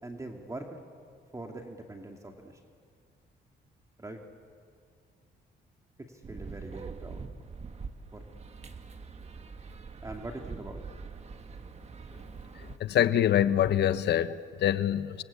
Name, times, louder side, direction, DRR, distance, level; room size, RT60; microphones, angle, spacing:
voice 1, 0.0-0.8 1.3-2.5 4.0-4.2 6.3-7.3 8.1-8.2 10.0-10.8, right 2 dB, 15° right, 2.5 m, -42 dB
sound 1, 6.2-12.8, right 4 dB, 35° right, 1.6 m, -44 dB
voice 2, 12.6-15.2, left 10 dB, 70° left, 1.0 m, -25 dB
28.5 x 23.5 x 8.4 m
cardioid pair, 95°, 18 cm